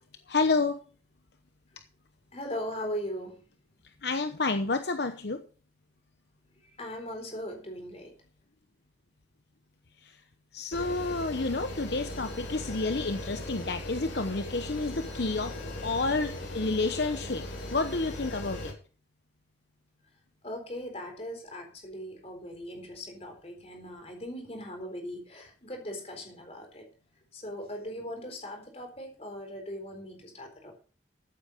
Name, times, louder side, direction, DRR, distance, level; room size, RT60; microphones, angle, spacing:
voice 1, 0.3-0.8 4.0-5.4 10.0-10.2 10.5-15.6 15.8-17.4 17.7-18.7, left 3 dB, 60° left, 8 dB, 0.9 m, -29 dB
voice 2, 2.3-3.4 6.8-8.1 20.4-26.8 27.3-30.8, equal, 35° left, 4 dB, 4.0 m, -39 dB
sound 1, 10.7-18.7, left 1 dB, 80° left, 4.6 m, -39 dB
14.0 x 8.6 x 5.3 m, 0.39 s
head